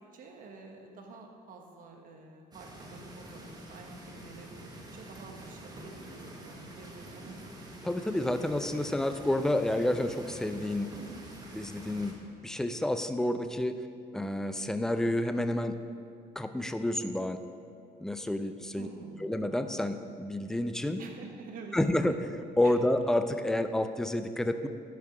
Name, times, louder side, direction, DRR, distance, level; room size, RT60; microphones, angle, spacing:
voice 1, 0.1-7.4 11.0-11.2 18.7-19.3 21.0-21.8 22.1-22.2 22.6-22.7, right 4 dB, 55° right, 2 dB, 1.2 m, -48 dB
sound 1, 2.5-12.1, right 1 dB, 25° right, 1.4 m, -47 dB
voice 2, 7.8-10.9 11.5-12.1 12.4-13.8 14.1-15.8 16.4-17.4 18.0-18.9 19.2-21.0 21.7-22.2 22.6-24.7, left 1 dB, 5° left, 9 dB, 0.4 m, -29 dB
11.0 x 5.8 x 4.9 m, 2.5 s
cardioid pair, 110°, 17 cm